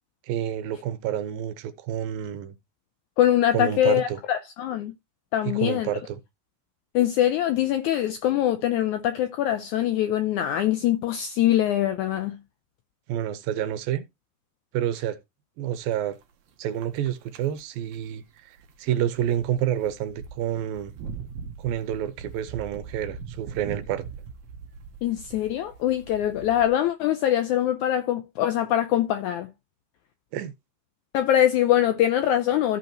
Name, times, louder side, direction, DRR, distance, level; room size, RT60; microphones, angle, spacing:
voice 1, 0.3-2.6 3.5-4.2 5.4-6.2 13.1-14.0 14.7-15.2 15.6-16.2 16.6-20.9 21.6-24.1 30.3-30.5, right 11 dB, 85° right, 2.6 m, -29 dB
voice 2, 3.2-4.9 5.3-5.9 6.9-12.4 25.0-29.5 31.1-32.8, left 12 dB, 90° left, 1.7 m, -23 dB
sound 1, 15.8-16.2 16.6-17.1 17.3-17.6 17.9-18.0 18.6-18.8 19.1-26.7, right 6 dB, 60° right, 2.1 m, -41 dB
14.5 x 5.3 x 2.9 m
omnidirectional pair, 4.2 m